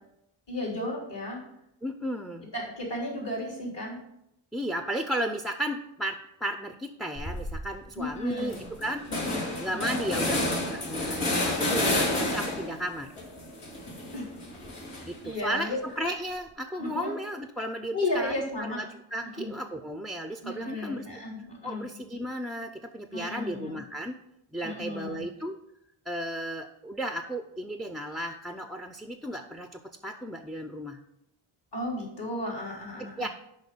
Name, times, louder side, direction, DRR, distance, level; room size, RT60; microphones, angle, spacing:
voice 1, 0.5-1.4 2.5-4.0 8.0-8.6 9.1-9.4 9.7-10.0 14.1-14.3 15.2-15.8 16.8-17.1 17.9-18.8 19.3-19.5 20.4-21.8 23.1-23.8 24.6-25.3 31.7-33.2, left 1 dB, 60° left, -3 dB, 3.7 m, -34 dB
voice 2, 1.8-2.5 4.5-9.1 9.6-13.1 15.0-18.9 19.1-21.1 21.6-24.2 24.5-25.6 26.1-31.0 33.0-33.3, equal, ahead, 6 dB, 0.5 m, -34 dB
sound 1, 7.2-7.6 8.0-8.1 8.4-12.8 13.2-15.3, left 1 dB, 80° left, 2.5 m, -30 dB
6.4 x 5.4 x 6.7 m, 0.82 s
cardioid pair, 80°, 49 cm